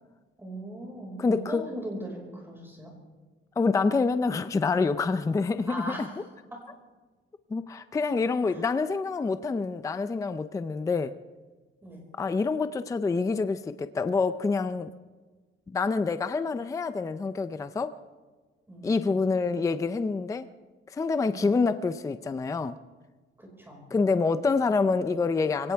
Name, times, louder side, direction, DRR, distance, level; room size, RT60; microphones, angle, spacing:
voice 1, 0.4-2.9 5.7-6.2 6.5-6.6 8.4-8.6 11.8-12.0 18.7-19.2 21.3-21.5 23.4-23.9, equal, 10° right, -1 dB, 5.1 m, -39 dB
voice 2, 1.2-1.6 3.6-6.1 7.5-11.1 12.2-14.9 15.7-17.9 18.8-20.5 20.9-22.7 23.9-25.7, left 4 dB, 15° left, 11 dB, 0.4 m, -27 dB
23.5 x 17.5 x 3.5 m, 1.3 s
cardioid pair, 165°, 21 cm